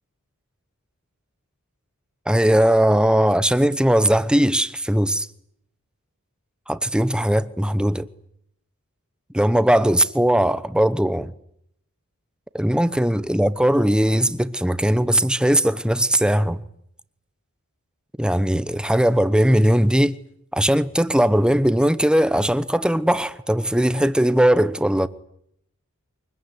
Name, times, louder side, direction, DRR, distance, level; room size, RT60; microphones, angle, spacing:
voice 1, 2.3-5.3 6.7-8.1 9.3-11.3 12.5-16.6 18.2-20.1 20.5-25.1, equal, 5° right, 0.9 m, -19 dB
24.0 x 21.5 x 9.7 m
head